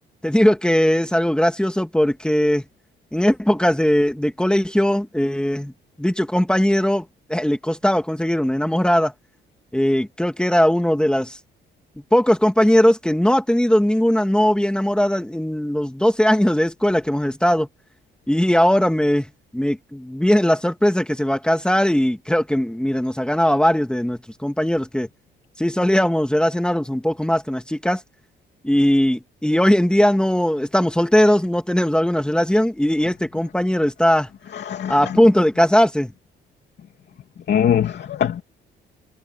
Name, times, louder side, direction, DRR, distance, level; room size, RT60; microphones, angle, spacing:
voice 1, 0.2-2.6 3.1-5.7 6.0-9.1 9.7-11.4 12.1-17.7 18.3-19.3 19.5-25.1 25.6-28.0 28.6-34.3 34.9-36.1, equal, 5° left, 2.8 m, -19 dB
voice 2, 34.5-35.2 37.5-38.4, left 9 dB, 60° left, 2.9 m, -22 dB
cardioid pair, 90°, 20 cm